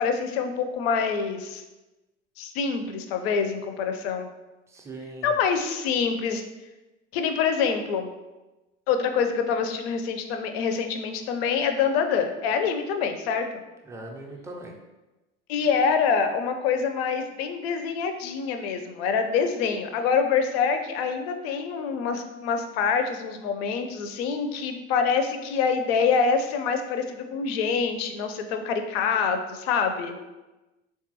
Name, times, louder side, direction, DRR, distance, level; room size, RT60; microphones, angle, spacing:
voice 1, 0.0-1.6 2.4-4.3 5.2-6.4 7.1-8.1 8.9-13.4 15.5-30.2, left 6 dB, 60° left, 7 dB, 0.4 m, -26 dB
voice 2, 4.7-5.3 13.8-14.8, right 2 dB, 10° right, 0 dB, 0.3 m, -40 dB
3.5 x 2.3 x 2.7 m, 1.1 s
figure-of-eight pair, 65°, 35 cm